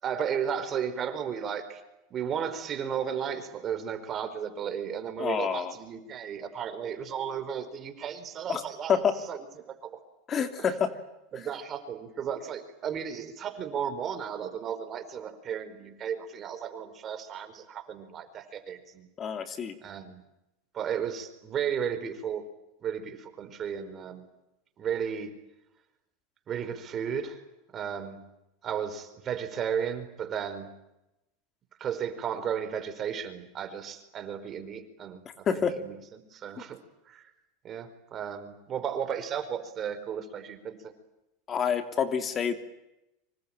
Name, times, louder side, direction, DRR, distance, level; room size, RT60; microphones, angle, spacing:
voice 1, 0.0-1.8 2.1-9.0 9.3-9.4 9.7-10.0 10.6-10.7 11.3-19.1 19.8-20.2 20.7-22.5 22.8-24.2 24.8-25.4 26.5-27.4 27.7-28.2 28.6-30.7 31.8-37.3 37.6-40.9, right 8 dB, 35° right, 11 dB, 4.6 m, -34 dB
voice 2, 5.2-5.7 8.5-8.6 8.9-9.1 10.3-10.9 19.2-19.7 35.5-35.8 41.5-42.6, left 7 dB, 30° left, 8 dB, 2.9 m, -27 dB
25.5 x 24.5 x 9.0 m, 0.90 s
supercardioid pair, 110°, 0 cm